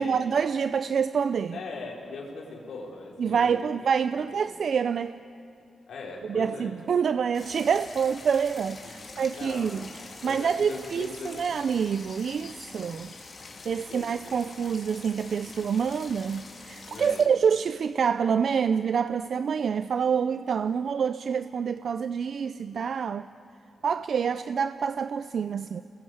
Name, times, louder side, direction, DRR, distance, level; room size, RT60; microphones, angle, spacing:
voice 1, 0.0-1.6 3.2-5.1 6.3-9.9 10.2-13.1 13.6-23.3 23.8-25.8, right 6 dB, 65° right, 0.5 m, -27 dB
voice 2, 1.5-3.7 4.1-4.4 5.9-6.7 8.8-8.9 9.3-9.7 10.2-11.5 13.7-14.1 15.5-15.6 16.9-17.3, left 3 dB, 85° left, 4.9 m, -40 dB
sound 1, 7.3-17.3, left 4 dB, 50° left, 3.3 m, -45 dB
27.0 x 21.0 x 8.1 m
cardioid pair, 95°, 0 cm